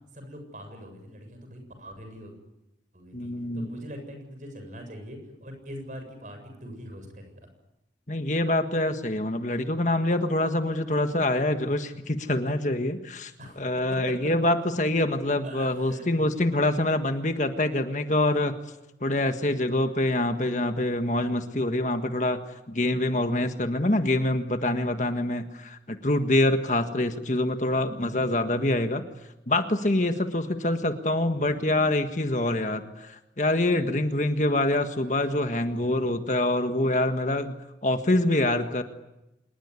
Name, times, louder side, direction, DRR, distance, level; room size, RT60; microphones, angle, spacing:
voice 1, 0.1-2.3 2.9-7.5 13.4-13.6 13.9-14.2 15.4-16.3 31.3-31.9 35.7-36.2, equal, 45° right, 6 dB, 7.7 m, -43 dB
voice 2, 3.1-3.7 8.1-13.3 13.6-18.5 19.0-22.4 22.7-29.0 29.5-37.6 37.8-38.8, left 1 dB, 45° left, 7 dB, 1.6 m, -25 dB
27.0 x 21.0 x 9.8 m, 0.92 s
head